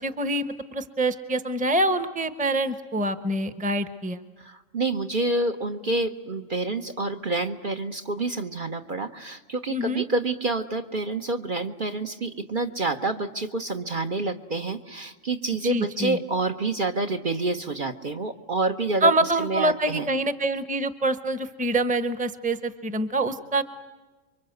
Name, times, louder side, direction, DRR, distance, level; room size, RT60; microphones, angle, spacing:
voice 1, 0.0-4.2 9.7-10.0 15.6-16.2 19.0-23.6, right 1 dB, 5° right, 11 dB, 1.0 m, -25 dB
voice 2, 4.4-19.1 19.4-20.1, right 2 dB, 40° right, 4 dB, 1.1 m, -28 dB
28.0 x 24.0 x 7.9 m, 1.2 s
omnidirectional pair, 1.4 m